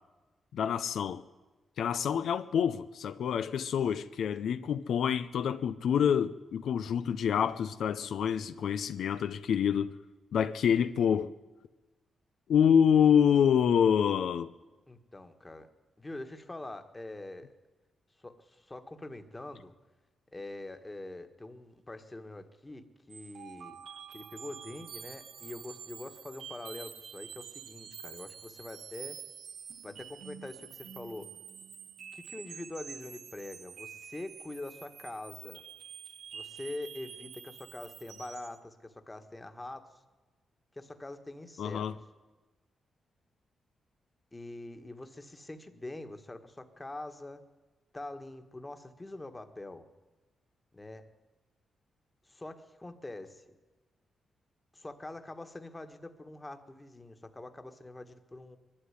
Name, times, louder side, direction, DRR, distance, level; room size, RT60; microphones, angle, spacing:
voice 1, 0.5-1.2 1.8-9.9 10.3-11.3 12.5-14.5 41.6-41.9, left 8 dB, 80° left, 0.7 m, -27 dB
voice 2, 14.9-15.7 16.0-17.5 18.2-19.7 20.3-23.8 24.1-29.2 29.8-31.3 32.1-35.6 36.3-39.9 40.7-41.9 44.3-47.4 47.9-49.9 50.7-51.0 52.3-53.4 54.7-58.6, left 2 dB, 15° left, 1.5 m, -44 dB
sound 1, 23.1-38.6, right 7 dB, 65° right, 1.0 m, -47 dB
22.5 x 12.0 x 9.7 m
cardioid pair, 125°, 0 cm